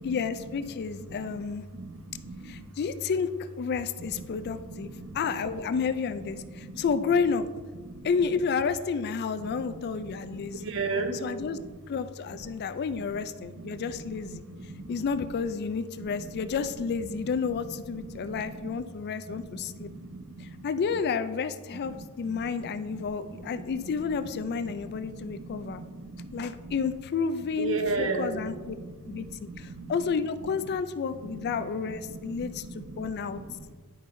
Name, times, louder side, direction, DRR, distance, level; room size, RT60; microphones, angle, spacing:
voice 1, 0.0-1.6 2.4-4.9 5.1-7.5 8.0-10.7 11.1-11.6 11.9-14.4 14.9-19.9 20.4-25.8 26.3-28.7 29.1-33.4, left 5 dB, 45° left, 11 dB, 0.3 m, -31 dB
voice 2, 1.1-1.4 1.7-2.6 4.1-4.2 4.7-5.2 6.5-6.8 7.8-8.1 9.5-11.5 13.1-13.2 13.6-15.0 16.0-16.4 17.1-17.2 18.0-18.8 19.3-20.6 21.7-22.6 22.9-23.7 24.6-26.7 27.6-29.9 31.2-31.7 32.1-33.7, right 3 dB, 60° right, 4 dB, 0.8 m, -37 dB
10.0 x 5.4 x 2.6 m, 1.4 s
head